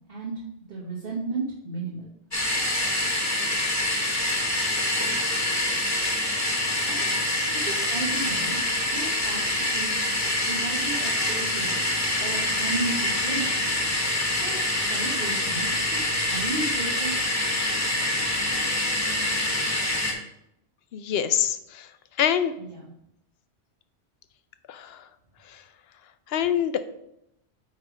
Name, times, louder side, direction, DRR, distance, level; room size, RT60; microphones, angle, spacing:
voice 1, 0.7-2.1 6.9-7.2 7.6-8.6 8.8-10.1 10.5-11.8 12.2-13.7 14.3-17.3 22.6-22.9, right 3 dB, 60° right, -6 dB, 1.4 m, -34 dB
sound 1, 2.3-20.1, left 1 dB, 15° left, 1.2 m, -26 dB
voice 2, 20.9-21.9 22.2-22.5 24.7-25.0 26.3-26.9, left 9 dB, 70° left, 12 dB, 0.8 m, -25 dB
8.9 x 3.4 x 4.9 m, 0.80 s
omnidirectional pair, 1.1 m